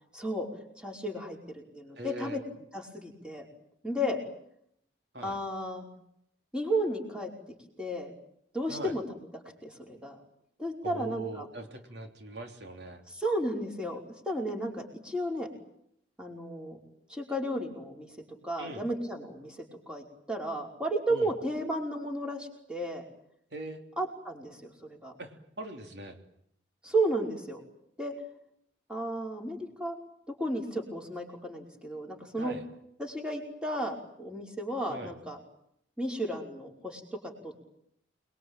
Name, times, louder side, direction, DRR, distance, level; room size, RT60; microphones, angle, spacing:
voice 1, 0.1-0.5 0.8-2.4 2.7-3.5 3.8-4.2 5.2-5.9 6.5-7.3 7.8-8.1 8.5-9.0 9.6-10.2 10.6-11.5 13.1-14.0 14.3-15.5 16.2-16.8 17.1-18.1 18.4-23.0 24.0-25.1 26.8-27.6 28.0-28.1 28.9-30.0 30.3-32.6 33.0-35.4 36.0-37.5, right 1 dB, 5° right, 1 dB, 5.3 m, -33 dB
voice 2, 2.0-2.4 5.1-5.4 8.7-8.9 10.8-13.0 18.6-18.8 21.1-21.3 23.5-23.8 25.2-26.2 32.4-32.6 34.9-35.1, right 2 dB, 65° right, 5 dB, 3.4 m, -41 dB
28.5 x 22.0 x 9.1 m, 0.72 s
head